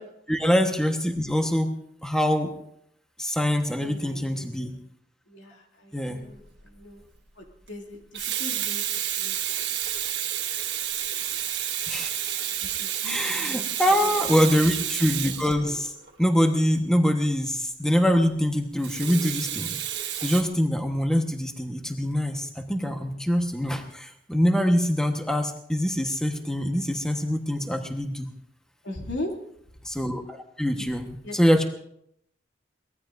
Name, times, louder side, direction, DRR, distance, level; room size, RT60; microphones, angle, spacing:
voice 1, 0.3-1.7 2.0-2.5 3.2-4.8 5.9-6.2 11.9-12.1 13.0-15.9 16.2-19.7 20.2-28.3 29.8-31.6, equal, 5° left, 4 dB, 1.2 m, -24 dB
voice 2, 3.8-4.7 5.3-7.0 7.4-8.8 9.2-9.4 12.6-13.7 14.0-14.2 28.8-29.4 30.8-30.9 31.2-31.4, left 1 dB, 80° left, 0 dB, 2.8 m, -39 dB
Water tap faucet / Sink (filling or washing), 6.4-6.6 7.9-16.1 18.8-20.4, right 10 dB, 65° right, 1.6 m, -30 dB
23.5 x 19.0 x 2.6 m, 0.73 s
head